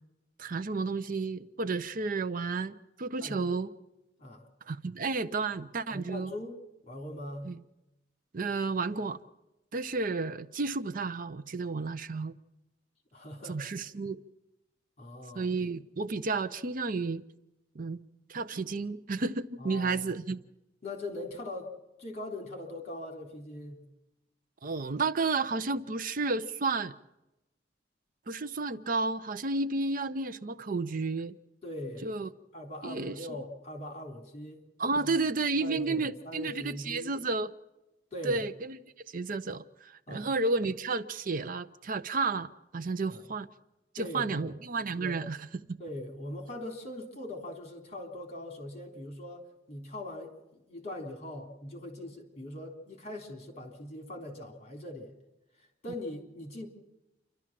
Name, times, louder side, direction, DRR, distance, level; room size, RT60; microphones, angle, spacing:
voice 1, 0.4-3.7 4.7-6.3 7.4-7.6 8.3-9.2 9.7-12.3 13.4-14.2 15.4-17.2 17.7-18.0 18.3-20.4 24.6-26.9 28.3-31.4 32.0-32.3 32.8-33.2 34.8-37.5 38.2-38.8 39.1-43.5 43.9-45.8, right 3 dB, 50° right, 0.6 m, -32 dB
voice 2, 3.2-3.6 4.2-4.5 5.9-6.6 6.8-7.5 13.1-13.7 15.0-15.5 19.6-20.0 20.8-23.8 31.6-32.1 32.5-34.6 34.9-35.2 35.6-37.1 38.1-38.4 40.1-40.3 43.1-43.2 44.0-44.5 45.0-45.2 45.8-55.1 55.8-56.7, left 1 dB, 40° left, 3.6 m, -41 dB
28.0 x 12.0 x 7.5 m
head